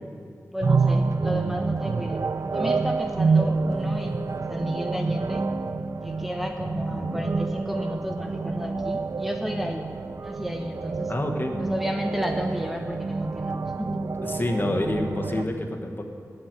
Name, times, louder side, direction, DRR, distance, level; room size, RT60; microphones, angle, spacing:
voice 1, 0.5-5.5 6.0-9.8 10.2-11.1 11.6-14.0, equal, 5° right, 3 dB, 0.7 m, -32 dB
sound 1, 0.6-15.4, right 4 dB, 60° right, 0.4 m, -27 dB
voice 2, 6.9-7.3 11.1-11.6 14.2-16.0, left 1 dB, 35° left, 2 dB, 1.3 m, -28 dB
9.3 x 7.2 x 8.9 m, 2.4 s
wide cardioid pair, 60°, 6 cm